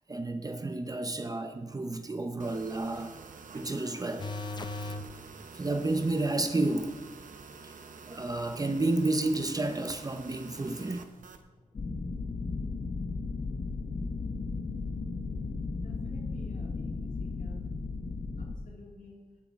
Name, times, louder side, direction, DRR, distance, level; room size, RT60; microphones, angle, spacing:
voice 1, 0.1-3.2 3.5-4.3 4.9-5.0 5.5-7.0 8.1-11.0, right 2 dB, 25° right, 0.6 m, -31 dB
sound 1, 2.4-11.4, right 5 dB, 65° right, 0.8 m, -48 dB
sound 2, 4.2-5.1 11.5-11.6, left 2 dB, 30° left, 0.6 m, -36 dB
sound 3, 11.7-18.6, left 4 dB, 50° left, 0.9 m, -35 dB
voice 2, 15.7-17.7 18.4-19.2, left 2 dB, 70° left, 2.5 m, -52 dB
11.0 x 7.9 x 4.7 m
wide cardioid pair, 155°, 15 cm